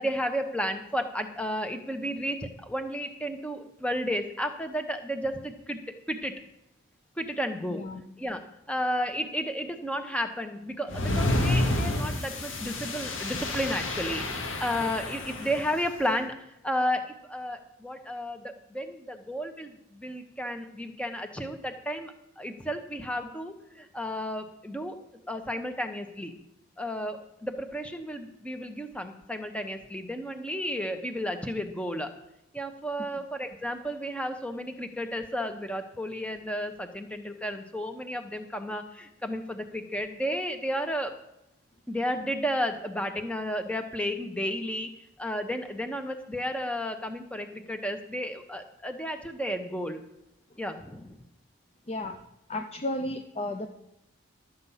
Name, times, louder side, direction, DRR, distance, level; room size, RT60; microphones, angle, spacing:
voice 1, 0.0-5.8 6.1-6.3 7.2-7.8 8.2-8.4 8.7-16.4 16.6-17.0 17.3-25.0 25.3-26.3 26.8-32.1 32.5-41.1 41.9-44.9 45.2-50.0 50.6-51.2, equal, 5° left, 6 dB, 1.0 m, -32 dB
voice 2, 7.7-8.0 33.1-33.3 51.9-52.2 52.5-53.7, left 1 dB, 30° left, 6 dB, 0.6 m, -33 dB
sound 1, 10.9-15.8, left 1 dB, 80° left, 2.0 m, -29 dB
12.5 x 8.1 x 5.7 m, 0.86 s
head